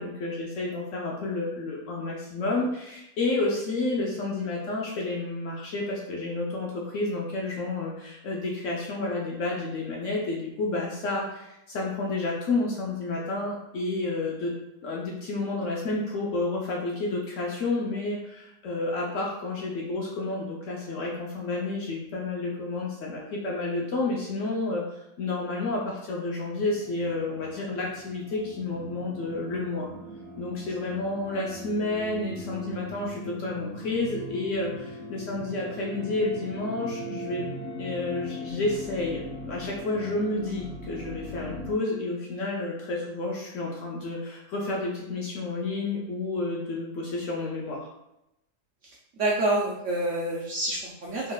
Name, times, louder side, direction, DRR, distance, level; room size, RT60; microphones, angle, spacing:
voice 1, 0.0-14.5 14.8-29.9 30.4-37.4 37.8-47.9, left 2 dB, 65° left, -3 dB, 0.8 m, -30 dB
sound 1, 26.6-41.8, equal, 40° right, 1.3 m, -40 dB
voice 2, 49.2-51.3, right 2 dB, 65° right, -3 dB, 0.7 m, -27 dB
3.8 x 3.0 x 2.3 m, 0.87 s
omnidirectional pair, 1.7 m